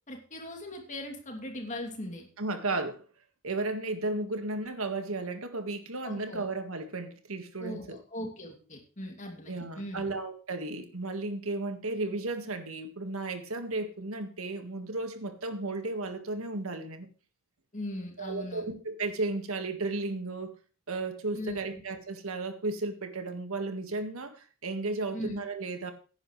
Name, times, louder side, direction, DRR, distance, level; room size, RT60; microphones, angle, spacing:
voice 1, 0.1-2.3 6.0-6.4 7.6-10.1 17.7-18.6 21.3-21.8 25.1-25.3, left 1 dB, 35° left, 3 dB, 2.8 m, -39 dB
voice 2, 2.4-3.0 3.4-8.0 9.5-17.1 18.2-20.5 20.9-25.9, right 2 dB, 70° right, 7 dB, 1.8 m, -34 dB
16.0 x 10.0 x 3.3 m, 0.37 s
head